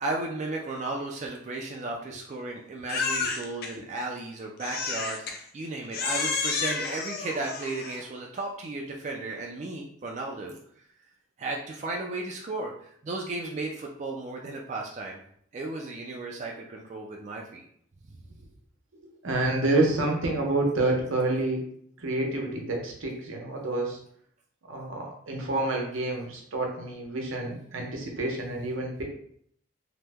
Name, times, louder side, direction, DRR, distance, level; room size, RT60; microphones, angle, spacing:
voice 1, 0.0-10.6 11.4-15.2 15.5-17.7, right 2 dB, 35° right, 0 dB, 0.3 m, -34 dB
Crying sobbing, 2.9-3.7 4.6-5.4 5.9-8.0, left 4 dB, 50° left, 0.4 m, -30 dB
voice 2, 19.2-21.6 22.0-24.0 24.7-29.0, right 2 dB, 85° right, 0 dB, 0.8 m, -28 dB
2.9 x 2.1 x 3.4 m, 0.65 s
head